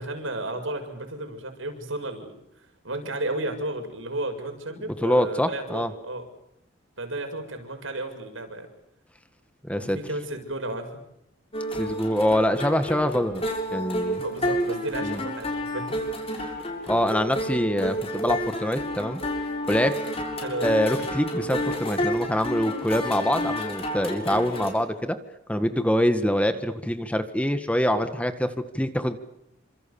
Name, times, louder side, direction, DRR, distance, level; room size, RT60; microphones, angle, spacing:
voice 1, 0.0-2.3 2.8-6.2 7.0-8.7 9.7-11.0 14.2-16.0 16.4-16.7 17.2-17.3 20.4-20.7, right 2 dB, 80° right, 5 dB, 7.0 m, -33 dB
voice 2, 5.0-5.9 9.6-10.0 11.7-13.4 13.7-14.2 15.0-15.2 16.4-16.5 16.9-19.2 19.7-19.9 20.6-25.2 25.5-29.2, equal, 5° left, 9 dB, 1.7 m, -25 dB
sound 1, 11.5-24.7, equal, 30° left, 6.9 m, -30 dB
29.5 x 26.5 x 7.2 m, 0.81 s
head